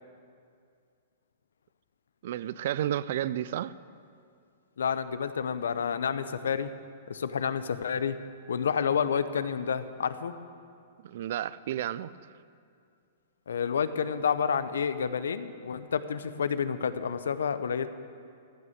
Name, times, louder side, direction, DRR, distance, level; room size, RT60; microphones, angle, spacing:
voice 1, 2.2-3.7 11.0-12.3, right 11 dB, 60° right, 0.4 m, -32 dB
voice 2, 4.8-6.7 7.1-8.2 8.5-10.4 13.5-17.9, left 7 dB, 85° left, 0.7 m, -29 dB
15.5 x 6.4 x 9.1 m
hypercardioid pair, 130°, 0 cm